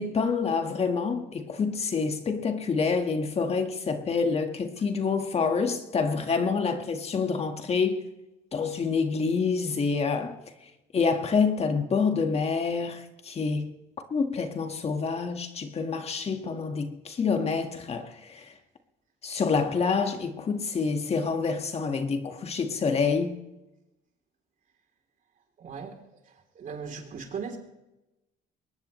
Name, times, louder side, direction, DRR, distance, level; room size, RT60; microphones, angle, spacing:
voice 1, 0.0-8.1 8.5-10.4 10.9-13.7 14.1-18.5 19.2-23.4, left 5 dB, 35° left, 1.7 m, -27 dB
voice 2, 25.6-26.0 26.2-27.6, right 6 dB, 50° right, 3.4 m, -38 dB
22.5 x 19.0 x 3.2 m
cardioid pair, 110°, 17 cm